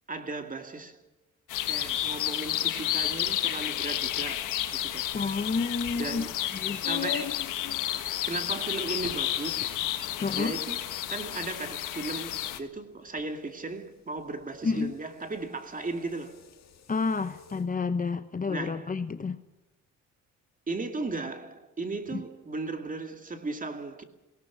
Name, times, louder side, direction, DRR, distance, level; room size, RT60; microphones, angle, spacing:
voice 1, 0.1-1.0 1.6-5.1 5.9-6.3 6.8-7.5 8.3-9.7 10.3-10.8 11.1-16.4 18.5-18.9 20.7-24.0, right 3 dB, 25° right, 2.4 m, -36 dB
sound 1, 1.5-12.6, left 13 dB, 90° left, 1.5 m, -31 dB
sound 2, 4.2-17.7, left 8 dB, 60° left, 2.0 m, -46 dB
voice 2, 5.1-6.3 6.5-6.9 10.2-10.6 14.6-14.9 16.9-19.4 22.1-22.2, left 4 dB, 25° left, 1.0 m, -30 dB
18.0 x 18.0 x 9.5 m
cardioid pair, 90°, 30 cm